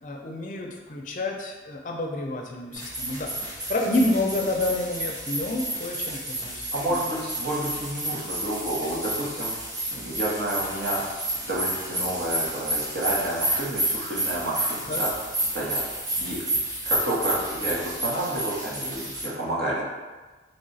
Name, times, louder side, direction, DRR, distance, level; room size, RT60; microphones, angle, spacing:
voice 1, 0.0-7.1 14.9-15.0, left 2 dB, 45° left, 1 dB, 0.5 m, -29 dB
sound 1, 2.7-19.3, right 1 dB, 20° right, 0.7 m, -30 dB
voice 2, 6.7-9.5 9.9-11.0 11.4-15.1 15.4-15.8 16.2-16.4 16.9-19.8, right 1 dB, 60° right, -6 dB, 1.0 m, -29 dB
3.4 x 2.4 x 3.9 m, 1.3 s
head